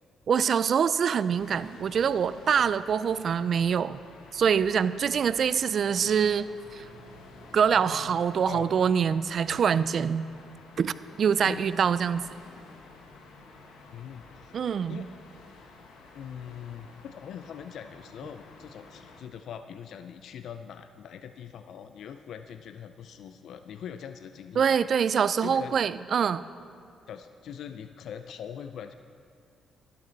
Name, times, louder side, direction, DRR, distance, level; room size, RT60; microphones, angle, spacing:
voice 1, 0.3-4.0 4.3-6.8 7.5-10.3 10.8-10.9 11.2-12.2 14.5-15.0 24.6-26.4, right 7 dB, 55° right, 15 dB, 0.4 m, -25 dB
sound 1, 1.4-19.2, left 3 dB, 90° left, 1.3 m, -50 dB
voice 2, 13.9-14.5 14.9-15.1 16.1-24.8 25.4-25.8 27.1-28.9, left 8 dB, 70° left, 9 dB, 0.4 m, -42 dB
12.0 x 12.0 x 4.0 m, 2.4 s
cardioid pair, 90°, 0 cm